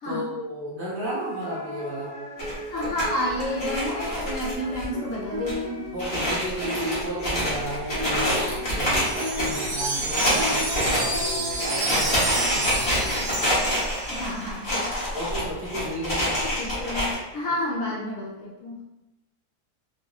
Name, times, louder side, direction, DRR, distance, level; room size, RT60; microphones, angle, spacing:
voice 1, 0.1-2.1 4.0-4.1 5.9-13.1 15.1-16.4, right 1 dB, 50° right, -6 dB, 1.1 m, -34 dB
sound 1, 1.0-11.8, equal, 30° right, 0.4 m, -35 dB
sound 2, 2.4-4.9 5.1-5.2 5.4-5.5 6.0-17.1, equal, 40° left, 1.4 m, -27 dB
voice 2, 2.7-5.9 14.1-15.0 16.4-18.8, left 1 dB, 60° left, -4 dB, 1.1 m, -30 dB
Wind chime, 9.0-14.4, right 3 dB, 90° right, 0.5 m, -30 dB
4.0 x 2.7 x 2.5 m, 0.94 s
omnidirectional pair, 1.6 m